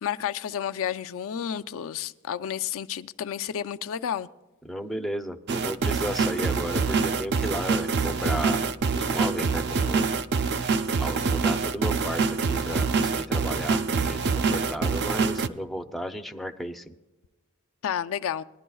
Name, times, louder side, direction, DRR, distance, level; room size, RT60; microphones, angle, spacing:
voice 1, 0.0-4.3 17.8-18.4, left 9 dB, 65° left, 0.4 m, -31 dB
voice 2, 4.6-10.1 11.0-16.9, equal, ahead, 0.5 m, -34 dB
sound 1, 5.5-15.5, right 4 dB, 50° right, 0.4 m, -25 dB
20.0 x 11.0 x 2.3 m
head